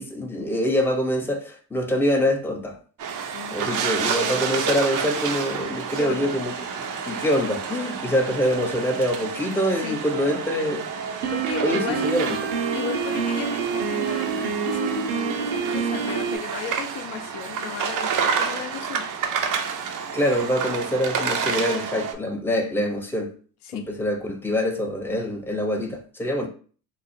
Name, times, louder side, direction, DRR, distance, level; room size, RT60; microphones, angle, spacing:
voice 1, 0.0-2.7 3.2-6.5 7.1-10.8 11.6-12.4 20.1-23.3 23.7-26.5, equal, 5° left, 0.6 m, -25 dB
sound 1, 3.0-22.1, right 6 dB, 40° right, 0.6 m, -29 dB
voice 2, 5.9-6.4 9.8-10.0 11.1-12.2 12.7-19.0 23.6-23.9, left 7 dB, 55° left, 0.6 m, -35 dB
Piano, 11.2-16.4, right 6 dB, 70° right, 0.7 m, -27 dB
3.1 x 2.0 x 2.6 m
hypercardioid pair, 70°, 49 cm